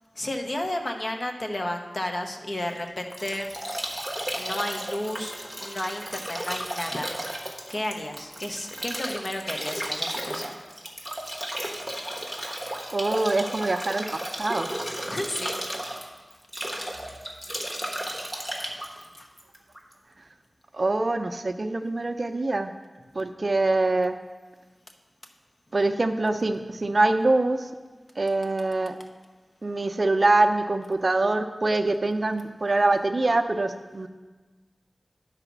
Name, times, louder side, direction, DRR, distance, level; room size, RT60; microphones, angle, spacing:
voice 1, 0.1-3.5 4.3-7.2 7.7-10.5 15.1-15.6 18.4-18.5 19.0-19.3, left 1 dB, 45° left, 4 dB, 0.9 m, -32 dB
Bathtub (filling or washing) / Drip / Trickle dribble, 2.7-19.9, equal, 10° left, 1.2 m, -34 dB
voice 2, 12.9-14.7 20.8-22.7 23.1-24.1 25.7-27.7 28.2-28.9 29.6-34.1, right 2 dB, 50° right, 7 dB, 0.5 m, -24 dB
9.9 x 4.1 x 5.9 m, 1.3 s
wide cardioid pair, 70°, 0 cm